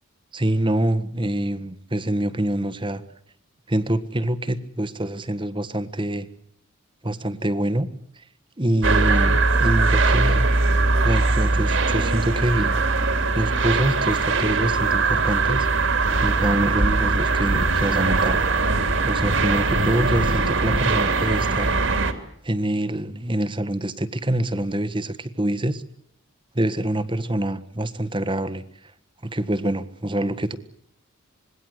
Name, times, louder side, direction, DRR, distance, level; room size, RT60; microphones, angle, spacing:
voice 1, 0.3-3.0 3.7-6.3 7.0-7.9 8.2-8.3 8.6-10.7 11.0-12.7 13.3-15.7 16.2-18.4 19.0-21.8 22.4-25.8 26.5-28.9 29.2-30.6, right 1 dB, 25° right, 13 dB, 1.4 m, -25 dB
sound 1, 8.8-22.1, right 3 dB, 65° right, 3.0 m, -21 dB
26.0 x 21.0 x 8.0 m, 0.70 s
head